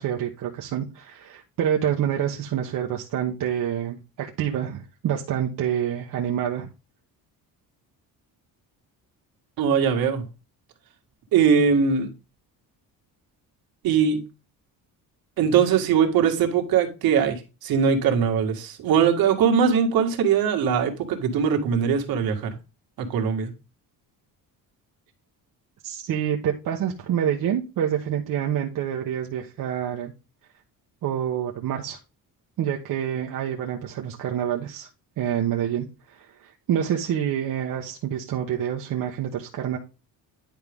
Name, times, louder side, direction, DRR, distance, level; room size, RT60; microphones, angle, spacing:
voice 1, 0.0-6.7 25.8-30.1 31.0-32.0 32.6-34.9 35.2-39.8, right 9 dB, 60° right, 1.2 m, -27 dB
voice 2, 9.6-10.3 11.3-12.1 13.8-14.3 15.4-22.6 23.0-23.5, right 7 dB, 75° right, 2.1 m, -21 dB
10.5 x 4.7 x 3.6 m
cardioid pair, 135°, 36 cm